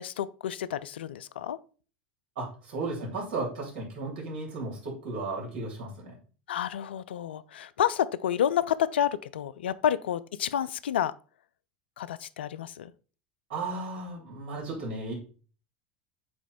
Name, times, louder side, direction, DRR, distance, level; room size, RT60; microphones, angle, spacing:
voice 1, 0.0-1.6 6.5-11.2 12.0-12.9, left 10 dB, 85° left, 0.3 m, -29 dB
voice 2, 2.3-6.1 13.5-15.1, right 3 dB, 70° right, 3.3 m, -35 dB
7.9 x 3.0 x 4.1 m
hypercardioid pair, 85°, 6 cm